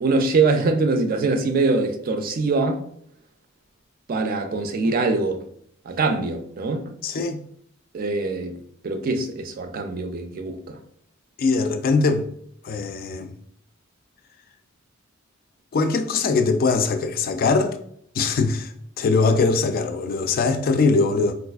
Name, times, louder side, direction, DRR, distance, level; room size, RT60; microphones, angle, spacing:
voice 1, 0.0-2.8 4.1-5.4 5.9-6.9 7.9-8.6 8.8-10.8, right 3 dB, 45° right, 0.4 m, -23 dB
voice 2, 7.0-7.4 11.4-12.3 12.6-13.3 15.7-17.8 18.1-21.3, left 4 dB, 45° left, 0.3 m, -21 dB
3.9 x 2.4 x 2.3 m
head